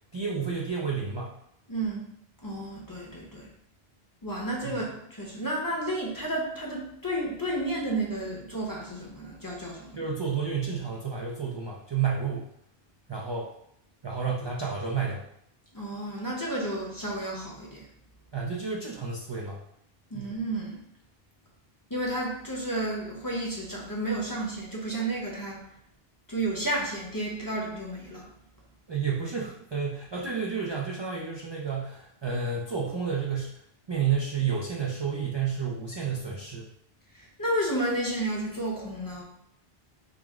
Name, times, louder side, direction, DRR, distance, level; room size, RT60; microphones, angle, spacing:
voice 1, 0.1-1.4 4.6-4.8 9.9-12.5 13.1-13.5 14.0-15.3 18.3-19.6 20.1-20.3 28.9-33.6 33.9-36.7, right 6 dB, 45° right, -3 dB, 0.3 m, -31 dB
voice 2, 1.7-2.0 2.4-3.5 4.2-10.1 15.7-17.8 20.1-20.8 21.9-25.6 26.3-28.3 37.2-39.2, right 1 dB, 20° left, -3 dB, 0.7 m, -32 dB
4.9 x 2.0 x 3.5 m, 0.74 s
omnidirectional pair, 1.1 m